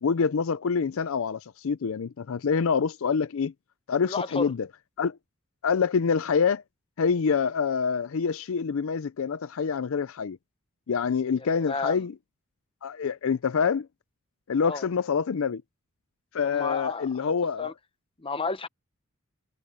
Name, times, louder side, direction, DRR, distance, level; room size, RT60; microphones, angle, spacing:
voice 1, 0.0-3.5 3.9-4.7 5.0-5.2 5.6-6.6 7.0-10.4 10.9-12.1 12.8-13.9 14.5-15.6 16.3-17.7, left 6 dB, 65° left, 0.5 m, -26 dB
voice 2, 4.1-4.5 11.4-12.0 14.6-14.8 16.4-17.3 17.6-17.7 18.2-18.7, left 3 dB, 25° left, 0.9 m, -32 dB
head